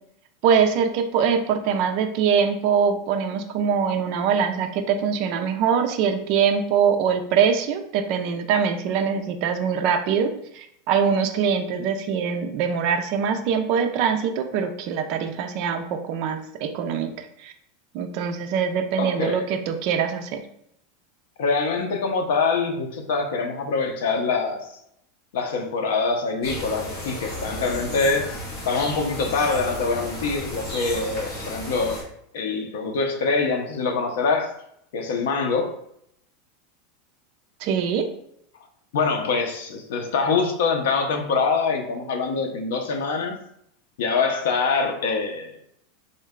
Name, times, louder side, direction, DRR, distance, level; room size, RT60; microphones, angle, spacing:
voice 1, 0.4-17.5 17.9-20.5 37.6-38.1, right 7 dB, 40° right, 6 dB, 0.4 m, -23 dB
voice 2, 19.0-19.5 21.4-24.7 25.3-28.3 28.6-34.5 34.9-35.7 38.9-43.4 44.0-45.5, left 4 dB, 75° left, 4 dB, 0.6 m, -24 dB
sound 1, 26.4-32.0, equal, 40° left, 1.1 m, -34 dB
3.8 x 2.2 x 3.6 m, 0.73 s
supercardioid pair, 175°, 0 cm